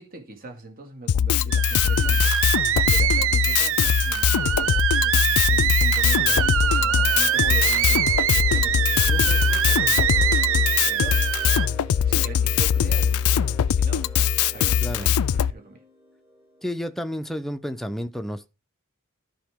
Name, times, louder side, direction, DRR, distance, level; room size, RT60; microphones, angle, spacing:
voice 1, 0.0-10.3 10.8-11.2 12.0-14.1 14.5-15.8, right 3 dB, 45° right, 2.1 m, -41 dB
Drum kit, 1.1-15.5, left 9 dB, 90° left, 0.4 m, -21 dB
sound 1, 1.5-11.7, right 11 dB, 65° right, 0.5 m, -24 dB
sound 2, 6.1-16.9, left 1 dB, 15° right, 1.8 m, -45 dB
voice 2, 14.8-15.2 16.6-18.5, equal, ahead, 0.6 m, -31 dB
13.5 x 5.0 x 3.6 m
head